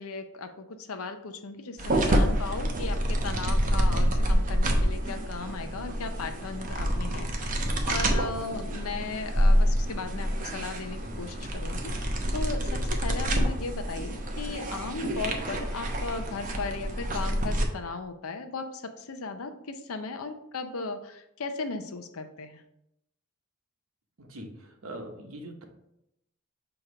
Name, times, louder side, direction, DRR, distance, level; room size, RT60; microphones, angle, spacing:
voice 1, 0.0-22.6, left 4 dB, 85° left, 8 dB, 0.6 m, -37 dB
sound 1, 1.8-17.6, equal, 40° right, 0.8 m, -27 dB
voice 2, 24.2-25.7, right 1 dB, 75° right, 3 dB, 1.0 m, -42 dB
6.5 x 3.0 x 4.8 m, 0.82 s
head